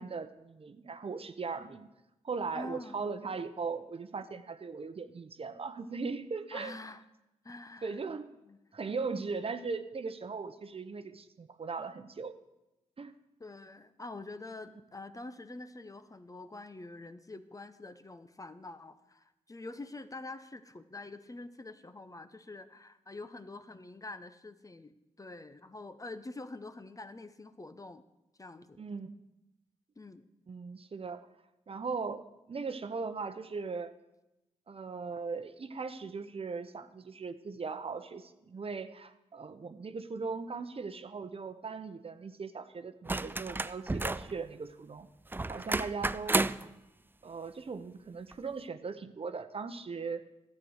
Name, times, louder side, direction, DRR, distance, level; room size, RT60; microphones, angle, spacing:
voice 1, 0.0-1.9 2.2-6.7 7.8-8.3 8.7-12.3 13.0-13.1 28.8-29.2 30.5-31.3 31.7-33.9 34.7-45.1 45.5-46.4 47.2-50.3, right 4 dB, 45° right, 10 dB, 0.9 m, -39 dB
voice 2, 2.5-3.1 6.5-7.0 7.4-8.0 8.4-8.6 13.4-24.9 25.2-28.0 28.4-28.8 30.0-30.2, left 2 dB, 25° left, 11 dB, 0.8 m, -46 dB
sound 1, 43.1-44.3 45.3-46.7 48.3-48.4, right 2 dB, 15° right, 0.4 m, -31 dB
12.0 x 7.7 x 6.4 m, 0.95 s
supercardioid pair, 45°, 14 cm